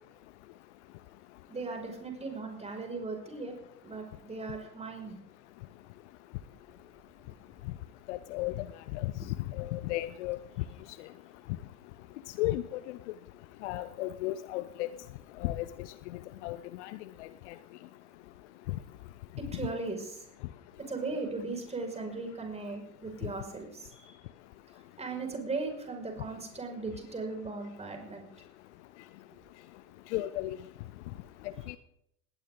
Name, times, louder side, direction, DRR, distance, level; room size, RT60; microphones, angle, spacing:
voice 1, 1.5-3.5 3.8-5.1 9.2-9.3 19.4-20.3 20.9-24.2 25.0-28.3, right 3 dB, 15° right, 3 dB, 5.6 m, -38 dB
voice 2, 8.1-8.7 8.9-9.1 9.6-10.4 12.4-13.0 13.6-14.9 15.4-15.7 16.4-17.5 30.1-30.6 31.7-31.8, left 16 dB, 45° left, 15 dB, 0.9 m, -34 dB
19.0 x 18.5 x 3.8 m, 0.74 s
figure-of-eight pair, 80°, 48 cm